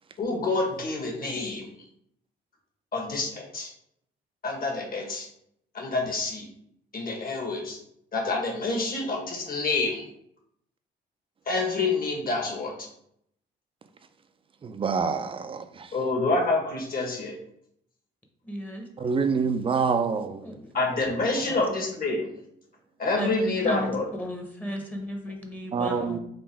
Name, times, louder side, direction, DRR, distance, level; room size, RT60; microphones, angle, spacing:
voice 1, 0.2-1.7 2.9-3.7 4.4-5.3 5.7-6.5 6.9-7.8 8.1-10.0 11.5-12.7 15.9-17.4 20.7-22.3 23.0-24.1, left 3 dB, 45° left, 1.4 m, -27 dB
voice 2, 14.6-15.9 19.0-20.5 25.7-26.2, right 5 dB, 25° right, 0.4 m, -26 dB
voice 3, 18.4-18.9 20.4-20.7 21.4-21.6 23.2-26.2, equal, 10° left, 0.8 m, -34 dB
3.8 x 2.6 x 4.2 m
cardioid pair, 90°, 20 cm